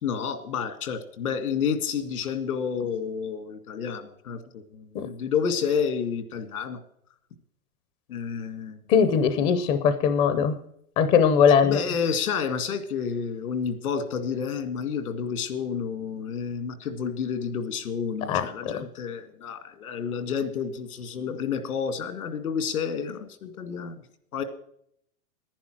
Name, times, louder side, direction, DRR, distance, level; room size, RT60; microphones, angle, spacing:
voice 1, 0.0-6.8 8.1-8.8 11.6-24.0 24.3-24.4, left 6 dB, 85° left, 9 dB, 2.2 m, -30 dB
voice 2, 8.9-10.5 11.0-11.8 18.2-18.8, left 7 dB, 15° left, 10 dB, 0.5 m, -21 dB
11.5 x 10.5 x 6.2 m, 0.70 s
hypercardioid pair, 150°, 43 cm